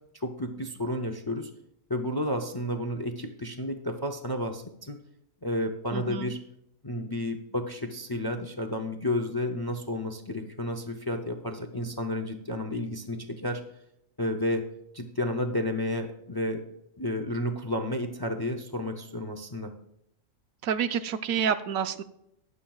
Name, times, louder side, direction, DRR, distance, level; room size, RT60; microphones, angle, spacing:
voice 1, 0.1-1.5 1.9-5.0 5.4-6.4 6.8-13.6 14.2-14.6 14.9-16.7 17.0-19.7, left 1 dB, 30° left, 7 dB, 0.4 m, -31 dB
voice 2, 5.9-6.3 20.6-22.0, right 7 dB, 85° right, 10 dB, 1.1 m, -28 dB
22.0 x 7.4 x 2.4 m, 0.80 s
omnidirectional pair, 1.4 m